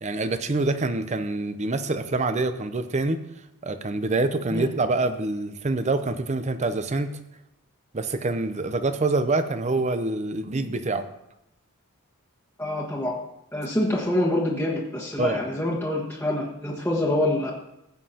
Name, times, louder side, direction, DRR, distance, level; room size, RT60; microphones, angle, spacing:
voice 1, 0.0-3.2 3.6-7.1 7.9-11.1 15.2-15.4, right 2 dB, 30° right, 10 dB, 0.6 m, -26 dB
voice 2, 12.6-13.1 13.5-17.5, left 1 dB, 10° left, -5 dB, 1.4 m, -26 dB
16.0 x 7.6 x 2.9 m, 0.84 s
head